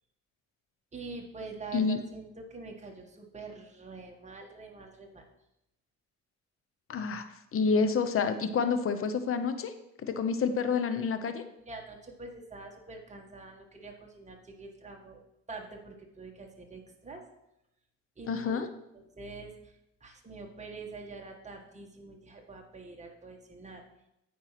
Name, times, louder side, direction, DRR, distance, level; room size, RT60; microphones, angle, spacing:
voice 1, 0.9-5.2 11.7-15.2 15.5-17.2 18.2-18.6 18.9-19.7 20.0-23.8, right 3 dB, 25° right, 1 dB, 1.8 m, -45 dB
voice 2, 6.9-7.2 7.5-9.7 10.1-11.4 18.3-18.7, left 5 dB, 45° left, 9 dB, 0.9 m, -28 dB
9.1 x 4.7 x 5.9 m, 0.84 s
cardioid pair, 90°, 30 cm